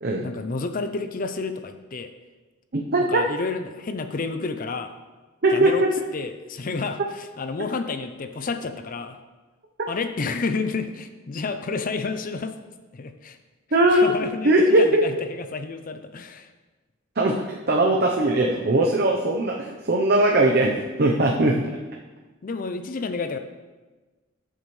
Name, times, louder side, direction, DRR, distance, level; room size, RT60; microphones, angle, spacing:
voice 1, 0.2-2.1 3.0-4.9 5.5-5.8 6.1-9.2 9.9-12.6 12.9-13.4 13.9-16.5 22.4-23.4, left 4 dB, 40° left, 8 dB, 0.5 m, -30 dB
voice 2, 2.7-3.2 5.4-5.7 13.7-14.0 14.4-15.0 17.2-17.3 17.7-21.5, right 1 dB, 50° right, 0 dB, 0.8 m, -19 dB
13.5 x 7.4 x 3.2 m, 1.2 s
head